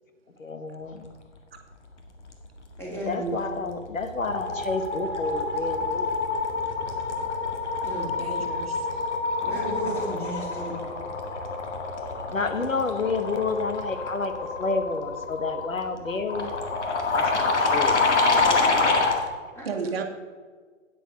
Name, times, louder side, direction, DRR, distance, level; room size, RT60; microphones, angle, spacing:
voice 1, 0.4-1.1 3.1-6.1 12.3-16.5 17.1-18.0, left 3 dB, 85° left, 8 dB, 1.3 m, -30 dB
voice 2, 2.8-3.3 7.8-8.1 9.4-10.8 19.5-19.7, equal, 5° left, -5 dB, 3.1 m, -33 dB
sound 1, 3.4-3.7 4.0-19.2, left 3 dB, 65° left, 1.9 m, -27 dB
voice 3, 8.2-9.0 19.6-20.0, right 5 dB, 50° right, 4 dB, 1.3 m, -33 dB
9.3 x 8.9 x 5.2 m, 1.5 s
figure-of-eight pair, 135°, 38 cm